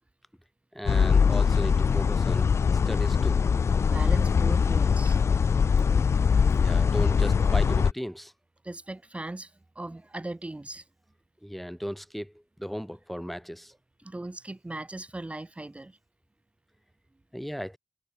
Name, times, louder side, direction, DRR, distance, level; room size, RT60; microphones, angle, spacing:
voice 1, 0.7-2.5 2.9-3.4 6.6-8.3 11.4-12.3 12.6-13.7 17.3-17.8, equal, ahead, 6.2 m, -36 dB
sound 1, 0.9-7.9, left 6 dB, 80° left, 1.7 m, -22 dB
voice 2, 3.8-5.2 8.6-10.8 14.0-16.0, right 2 dB, 25° right, 5.8 m, -38 dB
cardioid pair, 45°, 5 cm